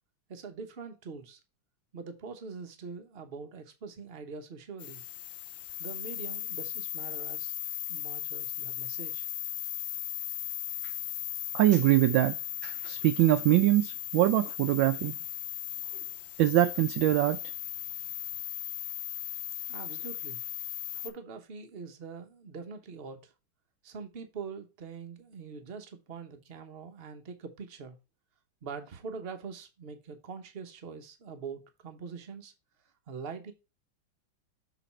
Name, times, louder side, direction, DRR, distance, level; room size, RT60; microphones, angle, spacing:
voice 1, 0.3-1.4 1.9-5.0 5.8-7.5 7.9-9.3 19.7-20.4 20.9-23.3 23.8-28.0 28.6-32.5 33.1-33.5, right 5 dB, 40° right, 0.9 m, -43 dB
sound 1, 4.8-21.1, left 12 dB, 75° left, 1.3 m, -37 dB
voice 2, 11.5-12.4 12.6-15.1 16.4-17.4, right 15 dB, 75° right, 1.2 m, -23 dB
6.7 x 4.1 x 4.2 m
omnidirectional pair, 2.2 m